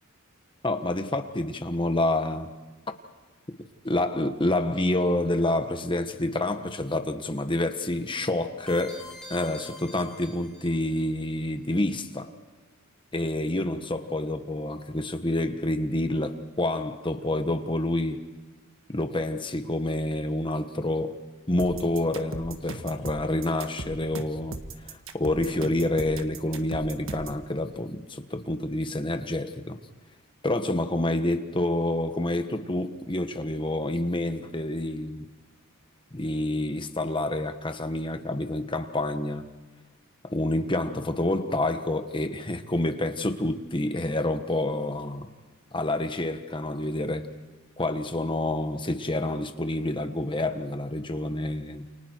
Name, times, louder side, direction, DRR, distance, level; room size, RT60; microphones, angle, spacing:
voice 1, 0.6-2.5 3.8-9.0 9.3-12.3 13.1-18.2 18.9-21.2 21.5-29.8 30.4-35.2 36.1-39.5 40.2-45.3 45.7-47.3 47.8-51.8, left 1 dB, 25° left, 1.4 m, -28 dB
sound 1, 8.7-11.0, left 2 dB, 5° left, 5.4 m, -45 dB
sound 2, 21.6-27.4, right 2 dB, 65° right, 1.6 m, -38 dB
30.0 x 29.0 x 4.6 m
head